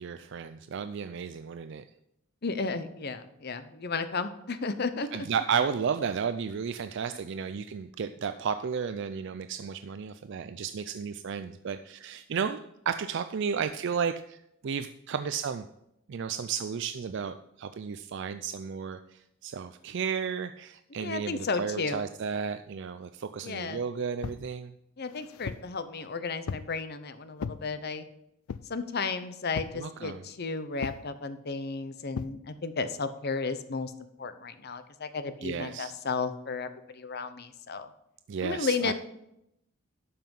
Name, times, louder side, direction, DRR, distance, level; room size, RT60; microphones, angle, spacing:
voice 1, 0.0-1.8 5.1-12.6 12.9-15.7 16.1-24.7 29.7-30.3 35.4-35.9 38.3-38.9, right 6 dB, 60° right, 10 dB, 0.4 m, -33 dB
voice 2, 2.4-5.3 21.0-22.0 23.4-23.8 25.0-28.0 28.7-33.9 34.2-37.9 38.4-38.9, left 4 dB, 50° left, 11 dB, 0.8 m, -33 dB
sound 1, 24.2-24.5 25.1-25.7 26.5-26.8 27.4-27.6 28.5-28.8 29.6-29.8 30.8-31.1 32.2-32.4, left 6 dB, 80° left, 0.4 m, -37 dB
12.0 x 5.7 x 5.4 m, 0.81 s
head